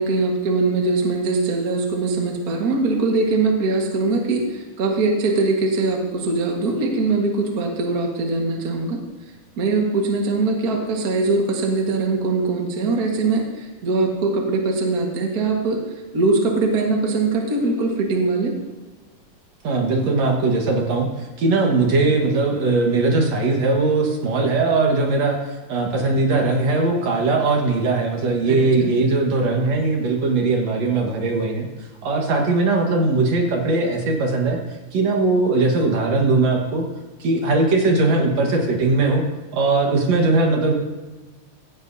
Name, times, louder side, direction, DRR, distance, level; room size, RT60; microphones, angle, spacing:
voice 1, 0.0-9.0 9.6-15.8 16.1-18.6 28.5-28.9, right 3 dB, 40° right, 1 dB, 1.7 m, -22 dB
voice 2, 19.6-34.6 34.9-36.8 37.2-39.2 39.5-40.7, right 3 dB, 60° right, 1 dB, 2.6 m, -20 dB
16.0 x 15.5 x 2.8 m, 1.2 s
omnidirectional pair, 3.5 m